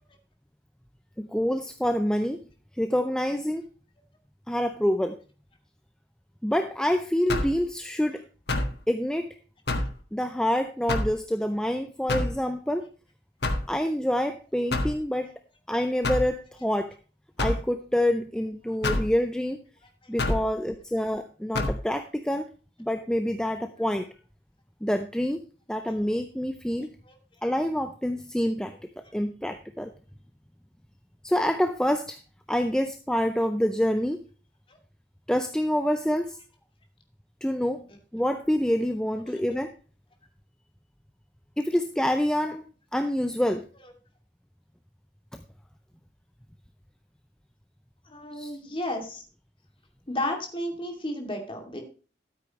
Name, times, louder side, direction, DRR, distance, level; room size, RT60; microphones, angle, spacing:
voice 1, 1.2-2.4 2.7-3.6 4.5-5.2 6.4-8.2 8.9-9.3 10.1-12.9 13.7-15.3 15.7-16.9 17.4-19.6 20.1-22.5 22.8-24.1 24.8-25.4 25.7-26.9 27.4-29.9 31.2-32.2 32.5-34.2 35.3-36.4 37.4-37.9 38.1-39.7 41.6-42.6 42.9-43.7 45.3-45.4 48.3-48.5, equal, 5° left, 7 dB, 0.5 m, -27 dB
sound 1, 7.3-7.6 8.5-8.8 9.7-10.0 10.9-11.2 12.1-12.4 13.4-13.7 14.7-15.0 16.0-16.3 17.4-17.6 18.8-19.1 20.2-20.5 21.5-21.8, left 2 dB, 65° left, 1.5 m, -27 dB
voice 2, 48.1-49.2 50.1-51.8, left 1 dB, 30° left, 2 dB, 2.5 m, -33 dB
13.0 x 8.5 x 3.1 m, 0.38 s
head